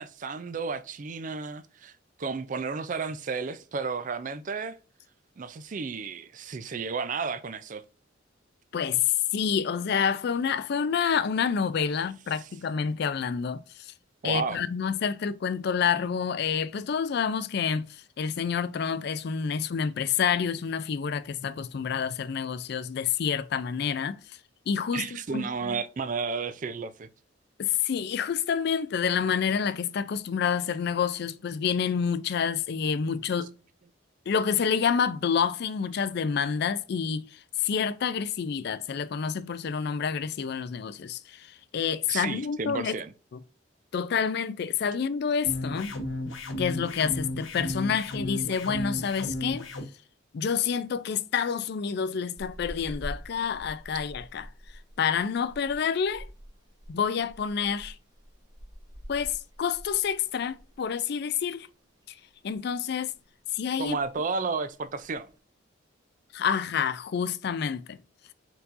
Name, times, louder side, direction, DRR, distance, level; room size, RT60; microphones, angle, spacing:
voice 1, 0.0-1.9 2.2-4.8 5.4-7.8 14.2-14.6 24.9-27.1 42.1-43.1 63.8-65.3, right 4 dB, 40° right, 0.4 m, -32 dB
voice 2, 8.7-13.9 14.2-24.4 24.7-25.8 27.6-33.5 34.3-43.0 43.9-45.9 46.6-49.6 50.3-54.5 55.0-56.3 56.9-58.0 59.1-61.7 62.4-63.1 63.5-64.0 66.3-68.0, left 7 dB, 55° left, 0.4 m, -28 dB
sound 1, 45.5-49.9, left 1 dB, 80° left, 0.9 m, -34 dB
sound 2, 52.4-60.9 61.1-61.4 61.7-62.6 62.9-63.3 63.5-63.6 63.8-64.3 64.8-65.3, equal, 20° right, 1.0 m, -45 dB
4.5 x 4.0 x 2.5 m
head